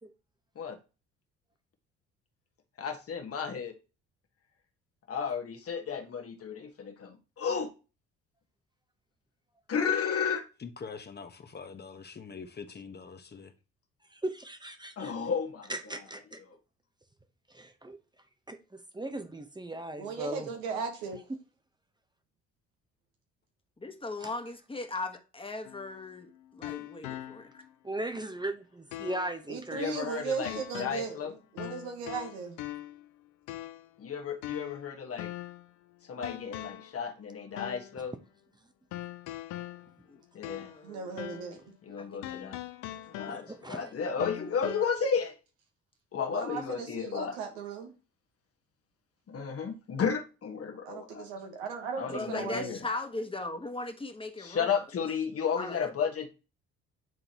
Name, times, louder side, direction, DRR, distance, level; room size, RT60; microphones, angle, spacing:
voice 1, 2.8-3.7 5.1-7.7 9.7-10.4 15.0-15.7 29.7-31.3 34.0-35.3 36.1-38.1 40.3-40.7 41.8-42.6 43.1-45.4 46.1-47.4 49.3-51.3 52.0-52.8 54.4-56.3, left 6 dB, 50° left, 1.4 m, -33 dB
voice 2, 10.6-13.5, left 5 dB, 35° left, 1.1 m, -44 dB
voice 3, 14.1-15.1 15.7-16.4 17.5-18.0 18.5-20.5 24.2-24.3 27.8-29.9 38.0-38.1 43.3-43.9 44.8-44.9, right 1 dB, 15° right, 0.9 m, -38 dB
voice 4, 20.0-21.2 29.5-32.6 40.8-41.7 46.3-47.9 50.8-52.7, right 5 dB, 90° right, 1.4 m, -37 dB
voice 5, 23.8-27.6 40.1-40.2 40.6-41.1 42.0-42.5 43.1-43.4 52.1-54.7 55.6-55.9, left 2 dB, 15° left, 1.4 m, -39 dB
sound 1, 25.6-27.7 28.1-28.2 28.9-29.4 30.4-31.2 31.6-33.1 33.5-33.9 34.4-35.7 36.2-37.0 37.6-38.0 38.9-40.9 41.2-41.6 42.2-43.7 44.2-44.8, left 14 dB, 75° left, 0.6 m, -41 dB
9.2 x 3.8 x 2.9 m
hypercardioid pair, 60°, 30 cm